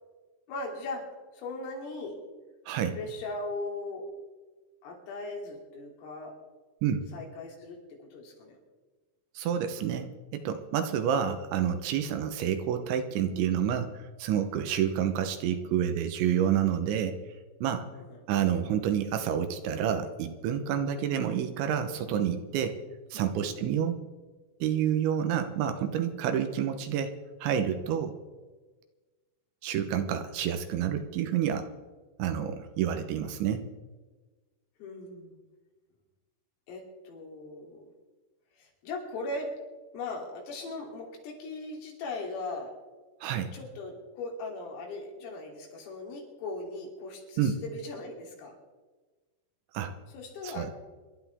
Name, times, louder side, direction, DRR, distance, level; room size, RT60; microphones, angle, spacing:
voice 1, 0.5-2.2 2.9-4.1 4.8-6.4 7.1-8.6 12.0-12.2 17.9-18.2 20.7-20.9 23.4-23.6 34.8-35.4 36.7-37.9 38.5-39.6 39.9-42.8 43.5-48.6 50.1-50.7, left 2 dB, 90° left, 0 dB, 5.7 m, -39 dB
voice 2, 9.4-17.2 17.6-17.9 18.3-22.8 23.1-24.0 24.6-27.1 27.4-28.1 29.6-31.7 32.2-33.7 43.2-43.5 47.4-47.6 49.7-49.9 50.4-50.7, right 9 dB, 75° right, 8 dB, 3.1 m, -29 dB
27.0 x 12.0 x 3.6 m, 1.3 s
omnidirectional pair, 5.8 m